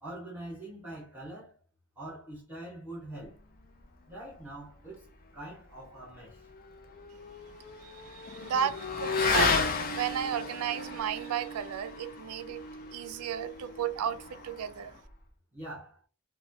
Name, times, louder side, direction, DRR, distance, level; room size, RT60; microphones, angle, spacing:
voice 1, 0.0-1.5 2.0-3.4 4.1-5.1 5.3-6.5 15.5-16.0, right 1 dB, 10° right, 0.9 m, -44 dB
Motorcycle / Accelerating revving vroom, 6.3-15.1, left 4 dB, 40° left, 0.4 m, -33 dB
voice 2, 7.8-9.6 9.9-12.6 12.9-14.9, right 8 dB, 75° right, 0.3 m, -34 dB
3.1 x 2.2 x 2.6 m
head